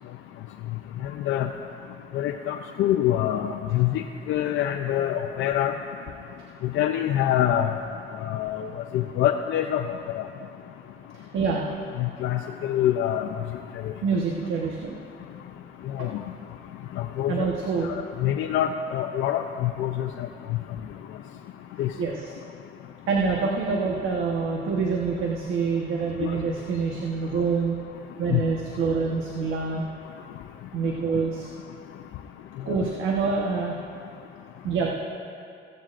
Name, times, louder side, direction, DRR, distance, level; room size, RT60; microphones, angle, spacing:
voice 1, 2.1-5.7 6.7-7.8 8.2-8.7 8.9-9.8 10.2-10.3 12.0-13.3 16.0-16.2 17.2-17.3 17.9-20.1 21.8-21.9 26.2-26.3 28.3-28.4, left 11 dB, 85° left, 4 dB, 0.5 m, -25 dB
voice 2, 11.1-11.7 14.0-15.0 16.0-16.1 17.3-17.9 21.7-22.4 23.1-27.8 28.2-29.8 30.7-31.5 32.6-33.7 34.6-35.0, right 4 dB, 80° right, -2 dB, 1.2 m, -26 dB
16.0 x 15.0 x 2.5 m, 2.5 s
cardioid pair, 90°, 20 cm